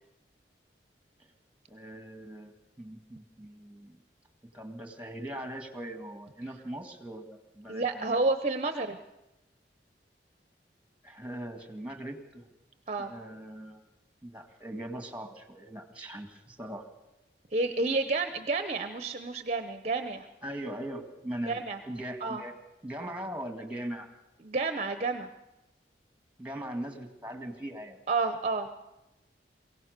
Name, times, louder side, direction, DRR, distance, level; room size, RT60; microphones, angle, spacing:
voice 1, 1.7-2.5 2.8-4.0 4.5-8.2 11.0-12.4 13.0-13.8 14.2-16.9 20.4-21.6 21.8-22.5 22.8-24.1 26.4-28.0, right 1 dB, 10° right, 6 dB, 2.0 m, -40 dB
voice 2, 7.7-9.0 12.9-13.1 17.5-20.3 21.5-21.8 22.2-22.4 24.4-25.3 28.1-28.7, right 3 dB, 40° right, 9 dB, 0.9 m, -30 dB
23.0 x 17.0 x 6.7 m, 0.94 s
head